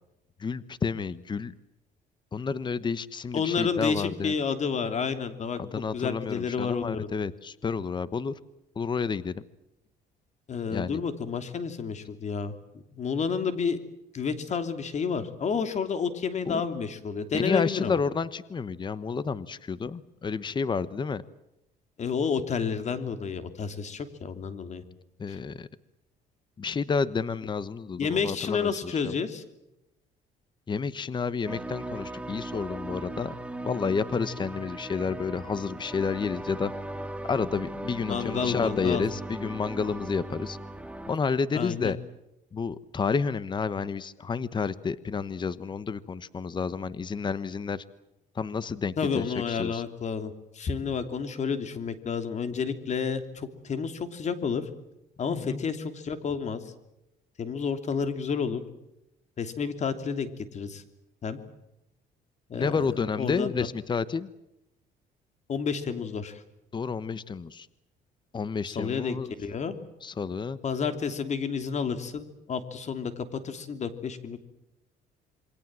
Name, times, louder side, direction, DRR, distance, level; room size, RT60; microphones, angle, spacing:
voice 1, 0.4-1.5 2.3-4.3 5.6-8.3 8.8-9.4 10.7-11.0 16.5-16.6 17.3-21.2 25.2-25.7 26.6-29.1 30.7-33.3 33.6-36.7 37.2-40.6 41.1-42.0 42.5-47.8 48.3-49.8 55.3-55.6 62.5-64.3 66.7-67.7 68.3-69.3 70.0-70.6, left 5 dB, 25° left, 16 dB, 1.1 m, -30 dB
voice 2, 3.3-5.6 5.9-7.1 10.5-12.5 12.9-13.8 14.1-18.0 22.0-24.8 25.3-25.4 28.0-29.4 38.1-39.0 41.5-41.9 49.0-54.7 55.2-56.6 57.4-58.6 59.4-60.8 61.2-61.4 62.5-62.8 63.2-63.7 65.5-66.4 68.6-69.7 70.6-74.4, left 6 dB, 45° left, 9 dB, 3.0 m, -30 dB
sound 1, 31.4-41.2, right 1 dB, 5° right, 1.8 m, -38 dB
27.5 x 23.5 x 7.6 m, 0.89 s
cardioid pair, 110°, 17 cm